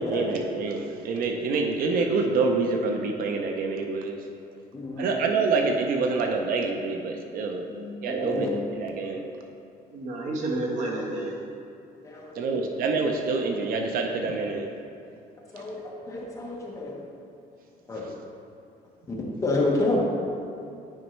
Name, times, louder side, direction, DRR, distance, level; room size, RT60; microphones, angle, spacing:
voice 1, 0.0-4.2 5.0-7.6 8.0-9.2 12.3-14.7, right 4 dB, 70° right, 3 dB, 0.6 m, -27 dB
voice 2, 4.7-5.1 8.1-8.5 12.0-12.6 15.5-15.8 16.1-17.0 17.9-18.1 19.1-19.2 19.4-20.0, left 2 dB, 20° left, -3 dB, 1.1 m, -29 dB
voice 3, 7.4-8.5 9.0-9.2 9.9-11.3, right 2 dB, 50° right, -1 dB, 1.2 m, -31 dB
9.0 x 5.3 x 3.1 m, 2.6 s
cardioid pair, 165°, 15 cm